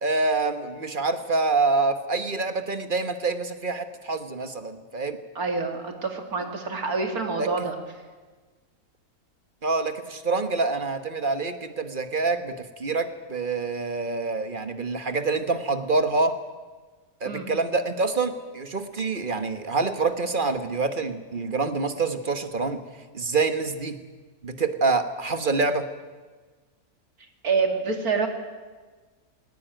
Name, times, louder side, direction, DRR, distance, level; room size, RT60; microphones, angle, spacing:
voice 1, 0.0-5.2 7.4-7.5 9.6-16.4 17.2-22.8 23.1-24.0 24.4-25.9, right 3 dB, 35° right, 9 dB, 1.5 m, -26 dB
voice 2, 5.3-7.8 17.2-17.5 27.4-28.3, right 4 dB, 80° right, 4 dB, 2.9 m, -27 dB
19.5 x 18.5 x 9.2 m, 1.4 s
omnidirectional pair, 1.5 m